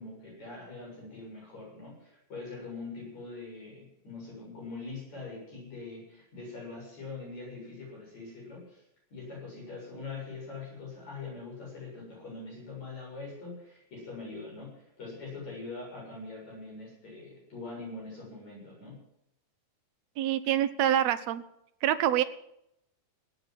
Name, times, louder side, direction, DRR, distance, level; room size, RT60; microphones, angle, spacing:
voice 1, 0.0-8.8 9.1-19.0, left 3 dB, 55° left, -3 dB, 8.6 m, -43 dB
voice 2, 20.2-21.4 21.8-22.2, right 11 dB, 70° right, 11 dB, 1.9 m, -26 dB
17.5 x 9.6 x 7.6 m, 0.79 s
omnidirectional pair, 3.8 m